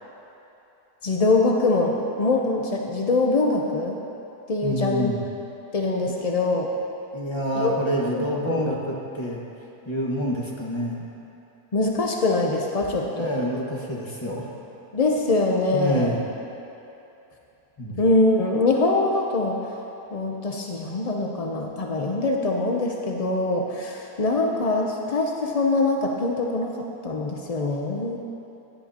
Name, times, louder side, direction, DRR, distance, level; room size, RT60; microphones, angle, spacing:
voice 1, 1.0-4.0 4.5-5.1 5.7-6.7 7.5-7.7 8.1-8.7 11.7-13.3 14.9-16.1 18.0-19.7 20.1-28.2, left 2 dB, 60° left, 0 dB, 0.4 m, -23 dB
voice 2, 4.6-5.2 7.1-9.4 9.8-11.1 13.2-14.5 15.7-16.2 17.8-18.0, equal, 15° left, -4 dB, 1.5 m, -27 dB
17.0 x 11.0 x 2.9 m, 2.9 s
omnidirectional pair, 1.7 m